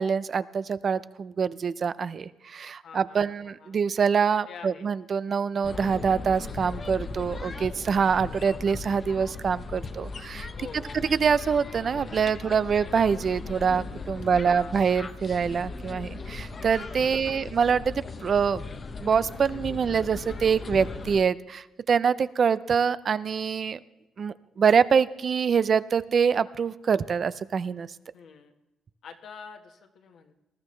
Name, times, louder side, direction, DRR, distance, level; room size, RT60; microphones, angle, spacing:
voice 1, 0.0-10.5 11.1-18.6 19.0-23.8 24.2-27.9, right 6 dB, 50° right, 16 dB, 0.5 m, -25 dB
voice 2, 2.8-3.8 4.5-4.9 10.4-11.0 14.4-14.8 17.1-17.5 28.1-28.5 29.0-30.3, left 6 dB, 65° left, 4 dB, 1.5 m, -46 dB
sound 1, 5.6-21.2, left 4 dB, 40° left, 0.8 m, -38 dB
20.0 x 13.0 x 3.3 m, 0.99 s
cardioid pair, 90°, 0 cm